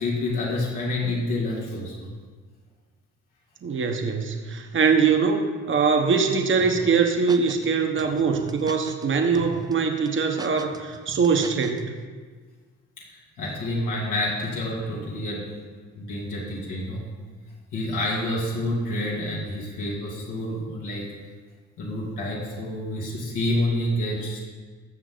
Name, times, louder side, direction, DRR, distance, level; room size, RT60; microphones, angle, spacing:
voice 1, 0.0-2.1 13.0-15.5 15.9-17.0 17.7-21.1 21.8-24.4, left 1 dB, 90° left, -5 dB, 2.7 m, -28 dB
voice 2, 3.6-12.0, right 5 dB, 40° right, 4 dB, 1.1 m, -22 dB
sound 1, 6.6-7.7 8.0-9.1 9.4-9.7 10.1-11.8, right 3 dB, 15° right, 0.5 m, -40 dB
14.5 x 6.3 x 3.9 m, 1.5 s
cardioid pair, 90°, 30 cm